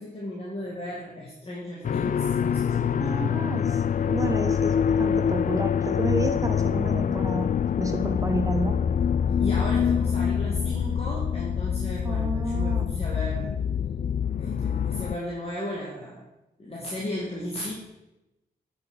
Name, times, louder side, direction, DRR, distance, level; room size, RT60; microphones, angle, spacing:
voice 1, 0.0-3.3 9.4-13.6 14.4-16.2 16.6-17.7, left 1 dB, 35° left, -4 dB, 2.2 m, -35 dB
sound 1, 1.8-15.2, left 8 dB, 50° left, 0.4 m, -25 dB
voice 2, 3.0-8.8 12.0-13.0, right 2 dB, 20° right, 5 dB, 1.3 m, -31 dB
9.3 x 6.3 x 5.5 m, 0.93 s
wide cardioid pair, 95°, 17 cm